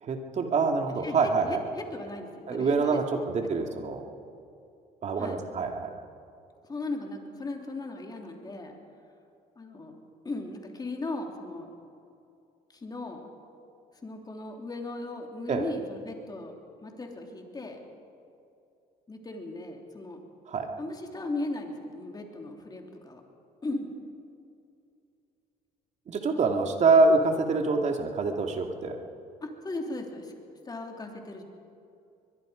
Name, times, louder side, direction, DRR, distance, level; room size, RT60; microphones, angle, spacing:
voice 1, 0.0-1.6 2.5-4.0 5.0-5.9 15.5-15.6 20.5-20.7 26.1-29.0, right 3 dB, 45° right, 4 dB, 2.4 m, -25 dB
voice 2, 1.4-3.3 5.2-5.4 6.7-8.7 9.6-10.0 10.2-11.7 12.7-13.2 14.0-16.5 16.8-17.8 19.1-20.2 20.8-23.2 23.6-23.9 29.4-30.3 30.6-31.4, left 2 dB, 25° left, 2 dB, 3.3 m, -37 dB
22.5 x 22.0 x 5.2 m, 2.6 s
cardioid pair, 95°, 16 cm